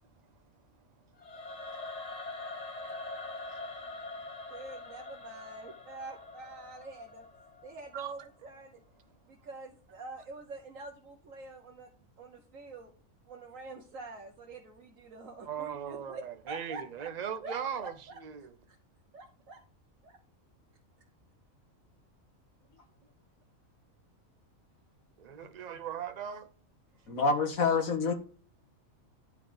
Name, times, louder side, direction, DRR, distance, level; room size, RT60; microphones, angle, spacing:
Singing / Musical instrument, 1.2-8.3, left 2 dB, 30° left, 1.3 m, -43 dB
voice 1, 4.5-7.2 7.6-8.8 9.3-11.9 12.2-12.9 13.3-17.1 17.4-18.2 18.7-18.8 19.1-19.6 20.0-20.2 27.1-27.2, right 3 dB, 70° right, 1.4 m, -46 dB
voice 2, 15.5-17.9 18.2-18.5 25.2-26.5, right 8 dB, 40° right, 0.7 m, -38 dB
voice 3, 27.1-28.1, left 4 dB, 90° left, 1.9 m, -27 dB
10.5 x 4.0 x 5.1 m
omnidirectional pair, 1.4 m